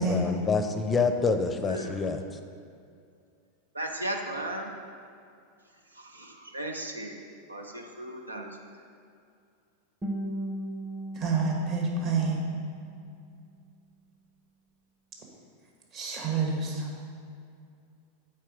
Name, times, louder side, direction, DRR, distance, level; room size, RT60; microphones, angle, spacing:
voice 1, 0.0-2.2, left 4 dB, 20° left, 7 dB, 0.5 m, -27 dB
voice 2, 1.7-2.0 3.7-4.7 5.9-7.2 7.5-8.5, right 1 dB, 85° right, 3 dB, 0.7 m, -36 dB
Guitar, 10.0-13.0, right 1 dB, 10° right, 0.8 m, -37 dB
voice 3, 11.1-12.4 15.9-16.9, right 4 dB, 40° right, -1 dB, 1.5 m, -28 dB
7.4 x 4.7 x 5.1 m, 2.4 s
figure-of-eight pair, 90°, 0 cm